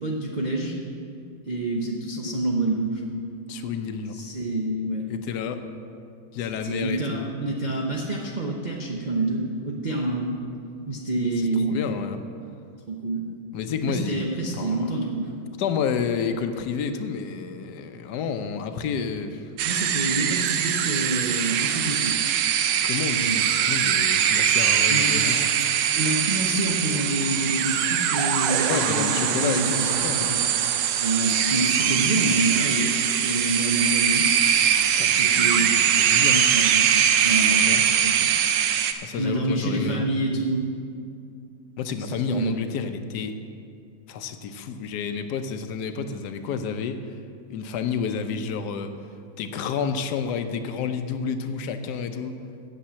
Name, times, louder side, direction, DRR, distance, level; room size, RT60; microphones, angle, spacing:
voice 1, 0.0-0.8 1.4-3.1 4.1-5.1 6.4-10.4 10.9-11.8 12.9-13.2 13.9-15.3 19.6-22.2 23.1-23.4 24.9-25.5 26.0-30.5 31.0-34.3 35.1-35.8 36.2-38.3 39.2-40.6 42.0-42.5, right 2 dB, 55° right, -2 dB, 0.4 m, -27 dB
voice 2, 3.5-4.2 5.1-5.6 6.3-7.3 11.6-12.2 13.5-14.3 14.5-14.9 15.6-19.5 22.7-25.4 28.7-30.4 35.0-36.5 37.5-37.8 39.0-40.1 41.8-43.3 44.1-47.0 47.5-48.9 49.4-52.4, left 6 dB, 70° left, 8 dB, 1.1 m, -30 dB
sound 1, 19.6-38.9, right 9 dB, 70° right, 1.2 m, -22 dB
8.6 x 7.7 x 7.4 m, 2.4 s
omnidirectional pair, 2.2 m